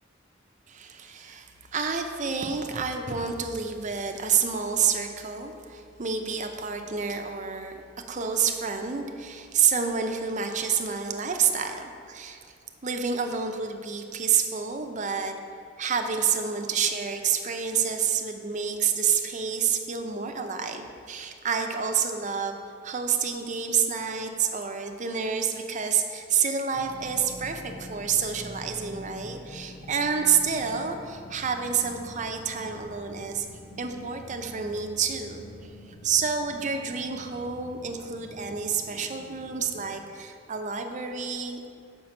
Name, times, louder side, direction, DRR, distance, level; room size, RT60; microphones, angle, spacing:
voice 1, 0.7-7.8 8.1-12.4 12.8-15.3 15.8-22.6 22.8-33.5 33.8-35.4 36.0-41.7, right 6 dB, 40° right, 5 dB, 0.6 m, -28 dB
sound 1, 26.7-39.9, left 1 dB, 70° left, 1.6 m, -45 dB
5.8 x 5.2 x 6.4 m, 2.3 s
head